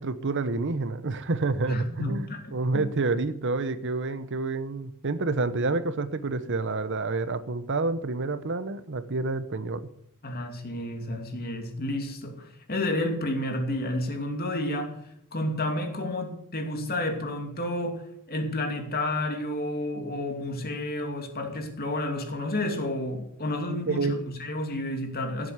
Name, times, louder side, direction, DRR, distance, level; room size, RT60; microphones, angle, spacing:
voice 1, 0.0-9.9 23.9-24.2, right 3 dB, 55° right, 13 dB, 0.9 m, -28 dB
voice 2, 1.7-2.9 10.2-15.0 15.3-18.0 18.3-25.5, left 1 dB, 45° left, 4 dB, 2.7 m, -31 dB
16.5 x 7.8 x 8.0 m, 0.74 s
head